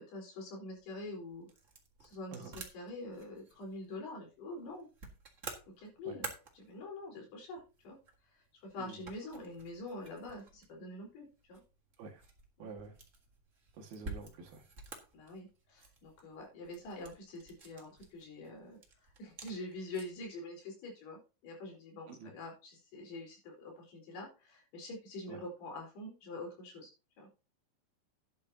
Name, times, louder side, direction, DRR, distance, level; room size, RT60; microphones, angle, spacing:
voice 1, 0.0-1.5 2.0-4.9 5.8-6.3 6.5-8.0 8.3-11.6 12.6-12.7 15.1-26.9 27.2-27.3, left 2 dB, 85° left, 0 dB, 6.3 m, -45 dB
sound 1, 0.7-20.3, right 3 dB, 45° right, 0.9 m, -52 dB
voice 2, 12.6-12.9 13.8-14.6 22.1-22.3 25.3-25.4, right 4 dB, 70° right, 3 dB, 3.7 m, -48 dB
12.0 x 10.5 x 2.9 m, 0.32 s
omnidirectional pair, 4.5 m